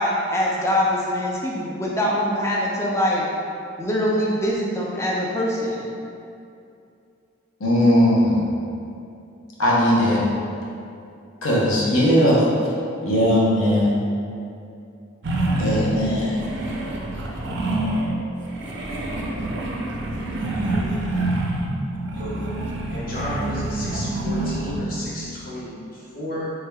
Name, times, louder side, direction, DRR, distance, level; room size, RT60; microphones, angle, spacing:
voice 1, 0.0-3.2 3.8-5.9, equal, 15° left, -3 dB, 0.3 m, -23 dB
voice 2, 7.6-8.4 9.6-10.2 11.4-12.5 13.0-14.0 15.6-16.4, equal, 85° left, -5 dB, 0.8 m, -18 dB
sound 1, 15.2-18.2 18.5-25.0, right 1 dB, 60° right, 0.4 m, -26 dB
voice 3, 21.7-22.4 22.9-26.5, left 1 dB, 45° left, -8 dB, 0.8 m, -33 dB
3.5 x 3.2 x 2.2 m, 2.6 s
head